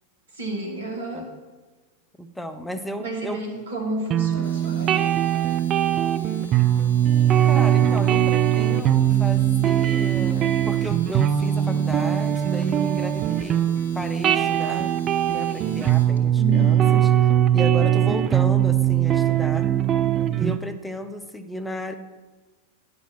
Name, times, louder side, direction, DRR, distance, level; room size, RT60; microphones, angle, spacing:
voice 1, 0.3-1.3 3.0-5.0 16.4-17.0, right 1 dB, 70° right, 1 dB, 2.0 m, -31 dB
voice 2, 2.2-3.4 7.4-14.9 15.3-17.1 17.5-19.7 20.3-21.9, equal, 5° left, 8 dB, 0.7 m, -33 dB
sound 1, 4.1-20.6, right 11 dB, 30° right, 0.4 m, -20 dB
Domestic sounds home sounds, 4.3-16.2, left 2 dB, 65° left, 1.3 m, -47 dB
9.4 x 6.0 x 5.9 m, 1.3 s
figure-of-eight pair, 90°, 0 cm